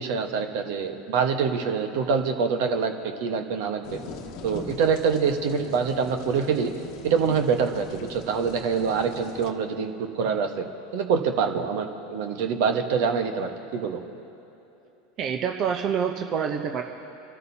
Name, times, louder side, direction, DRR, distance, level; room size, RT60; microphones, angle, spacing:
voice 1, 0.0-4.0 4.4-6.7 7.0-10.7 10.9-14.0, right 6 dB, 65° right, 6 dB, 1.2 m, -25 dB
sound 1, 3.8-9.5, left 5 dB, 55° left, 1.0 m, -41 dB
voice 2, 15.2-16.8, right 7 dB, 45° right, 4 dB, 0.8 m, -27 dB
26.5 x 13.5 x 2.8 m, 2.9 s
hypercardioid pair, 90°, 0 cm